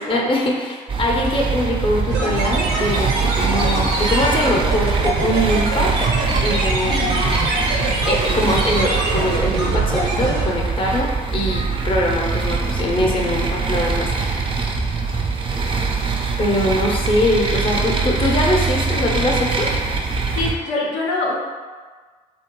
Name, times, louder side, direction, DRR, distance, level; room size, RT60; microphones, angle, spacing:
voice 1, 0.0-5.9 6.4-7.2 7.6-14.7 16.4-19.7, left 1 dB, 25° left, -1 dB, 0.6 m, -22 dB
sound 1, 0.9-20.5, right 4 dB, 25° right, 0.4 m, -23 dB
sound 2, 2.1-10.5, right 2 dB, 80° right, 0.5 m, -24 dB
voice 2, 20.3-21.4, left 2 dB, 65° left, -3 dB, 0.6 m, -24 dB
2.6 x 2.2 x 2.9 m, 1.5 s
hypercardioid pair, 45°, 21 cm